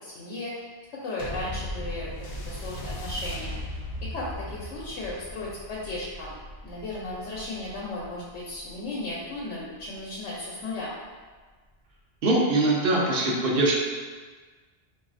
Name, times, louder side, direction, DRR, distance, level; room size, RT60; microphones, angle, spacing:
voice 1, 0.0-0.6 1.0-2.1 2.5-3.6 4.0-10.9, left 2 dB, 85° left, -6 dB, 0.9 m, -35 dB
sound 1, 1.2-10.0 10.7-10.8, left 1 dB, 55° left, 0.5 m, -38 dB
voice 2, 12.2-13.8, right 2 dB, 60° right, -3 dB, 0.8 m, -22 dB
4.0 x 2.6 x 2.4 m, 1.4 s
omnidirectional pair, 1.1 m